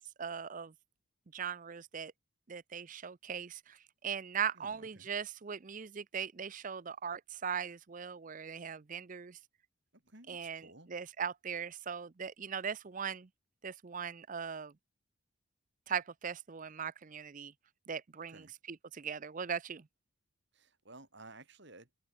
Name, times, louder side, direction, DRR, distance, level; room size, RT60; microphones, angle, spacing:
voice 1, 0.2-0.7 1.3-2.1 2.5-9.4 10.3-13.3 13.6-14.7 15.9-17.5 17.9-19.9, right 7 dB, 35° right, 0.5 m, -39 dB
voice 2, 4.6-5.1 9.9-10.9 18.3-18.5 20.5-21.9, right 2 dB, 55° right, 3.9 m, -55 dB
open air
head